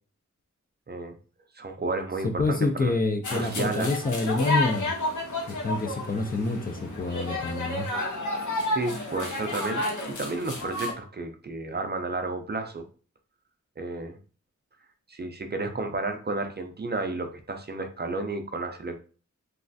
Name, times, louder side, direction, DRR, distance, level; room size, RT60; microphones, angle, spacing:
voice 1, 1.6-2.9 3.3-3.9 8.7-12.8 13.8-14.2 15.1-19.0, right 3 dB, 35° right, 6 dB, 0.4 m, -32 dB
voice 2, 2.2-4.9 5.5-7.9, left 3 dB, 30° left, 6 dB, 0.3 m, -27 dB
sound 1, 3.2-10.9, left 1 dB, 75° left, 0.8 m, -31 dB
3.1 x 2.3 x 2.6 m, 0.38 s
wide cardioid pair, 100°, 30 cm